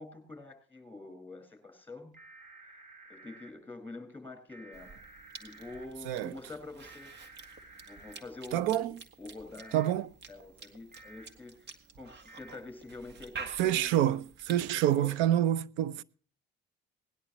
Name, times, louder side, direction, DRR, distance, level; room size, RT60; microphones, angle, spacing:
voice 1, 0.0-2.1 3.1-5.0 5.4-7.1 7.9-8.8 9.2-11.7 11.9-14.0 14.7-15.1, left 2 dB, 10° left, 5.3 m, -46 dB
sound 1, 2.1-3.5 4.5-5.9 6.8-8.2 9.6-9.9 10.9-11.3 12.3-12.6, right 3 dB, 45° right, 3.0 m, -53 dB
Cough / Chewing mastication, 4.7-15.2, right 5 dB, 60° right, 2.0 m, -50 dB
voice 2, 8.5-9.0 9.7-10.1 13.6-16.0, right 12 dB, 80° right, 0.6 m, -27 dB
19.0 x 11.0 x 3.0 m
supercardioid pair, 80°, 19 cm